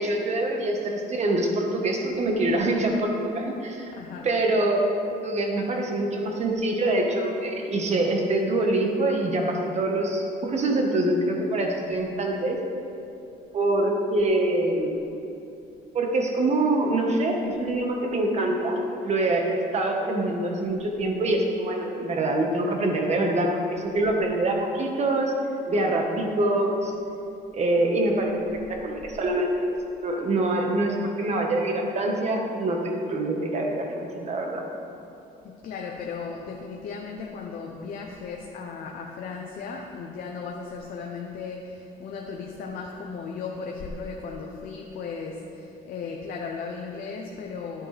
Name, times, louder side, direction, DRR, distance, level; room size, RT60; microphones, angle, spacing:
voice 1, 0.0-3.9 4.2-4.8 5.2-12.6 13.5-15.0 15.9-25.3 25.7-26.9 27.5-29.7 30.0-34.6, right 2 dB, 40° right, 1 dB, 1.4 m, -25 dB
voice 2, 3.9-4.3 35.4-47.9, left 5 dB, 60° left, 1 dB, 0.8 m, -36 dB
11.0 x 8.7 x 3.4 m, 2.8 s
cardioid pair, 110°, 17 cm